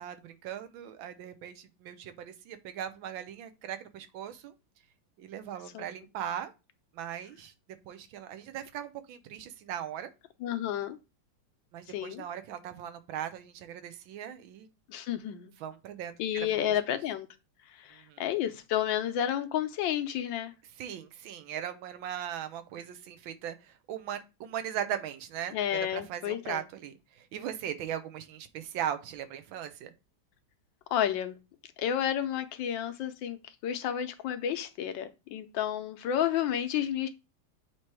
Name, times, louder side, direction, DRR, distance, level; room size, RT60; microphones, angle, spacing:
voice 1, 0.0-4.5 5.2-6.5 6.9-7.5 7.8-10.1 11.7-14.7 15.6-16.5 16.9-17.0 17.9-18.3 20.8-29.9, right 10 dB, 80° right, 1.4 m, -39 dB
voice 2, 10.4-11.0 11.9-12.2 14.9-15.5 16.2-17.3 17.7-20.5 25.5-26.6 30.9-31.4 31.8-33.4 33.6-37.1, left 10 dB, 75° left, 1.3 m, -31 dB
7.5 x 3.0 x 4.6 m
omnidirectional pair, 2.2 m